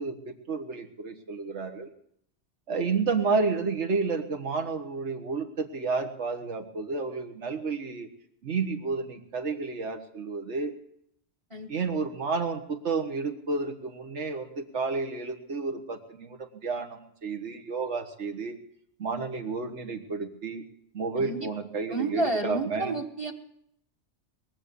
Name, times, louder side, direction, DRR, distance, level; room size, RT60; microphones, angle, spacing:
voice 1, 0.0-1.9 2.7-8.1 8.4-10.7 11.7-18.6 19.0-20.6 20.9-22.9, right 4 dB, 75° right, 6 dB, 1.7 m, -31 dB
voice 2, 21.2-21.5 21.9-23.3, right 2 dB, 25° right, 4 dB, 1.2 m, -30 dB
21.5 x 7.7 x 6.9 m, 0.71 s
omnidirectional pair, 1.2 m